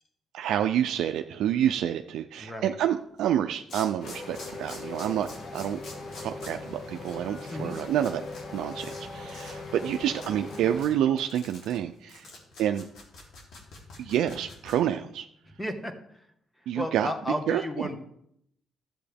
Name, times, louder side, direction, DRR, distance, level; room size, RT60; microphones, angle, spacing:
voice 1, 0.3-5.3 5.5-5.8 6.2-8.2 8.5-12.3 12.6-12.9 14.0-15.3 16.7-17.1 17.5-17.9, right 10 dB, 80° right, 6 dB, 0.4 m, -28 dB
voice 2, 2.4-2.7 7.5-7.8 15.6-15.9 16.7-18.0, left 1 dB, 10° left, 6 dB, 1.4 m, -33 dB
sound 1, 3.1-3.2 3.7-8.4 8.7-9.0 9.3-9.5 9.8-14.7, left 2 dB, 75° left, 3.1 m, -46 dB
sound 2, 4.0-10.8, left 3 dB, 60° left, 1.6 m, -40 dB
13.5 x 7.6 x 3.5 m, 0.74 s
cardioid pair, 90°, 0 cm